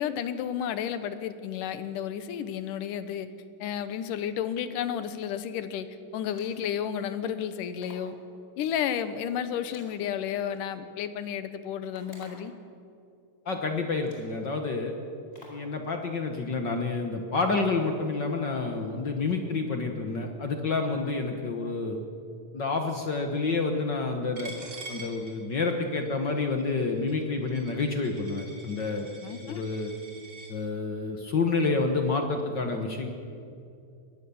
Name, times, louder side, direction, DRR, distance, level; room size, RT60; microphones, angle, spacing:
voice 1, 0.0-3.3 3.6-5.9 6.1-8.2 8.6-12.5 29.2-29.7, left 9 dB, 75° left, 12 dB, 2.5 m, -32 dB
sound 1, 6.2-6.8 7.8-8.2 9.6-10.6 11.9-12.6 13.5-13.6 14.0-14.4 15.3-15.7, equal, 20° left, 4.4 m, -52 dB
voice 2, 13.4-14.9 15.5-22.0 22.5-24.5 24.9-29.1 29.4-29.9 30.5-33.1, left 3 dB, 60° left, 4 dB, 1.2 m, -29 dB
Coin (dropping), 24.4-30.5, right 2 dB, 30° right, 3.5 m, -46 dB
22.5 x 18.5 x 7.1 m, 2.6 s
omnidirectional pair, 3.9 m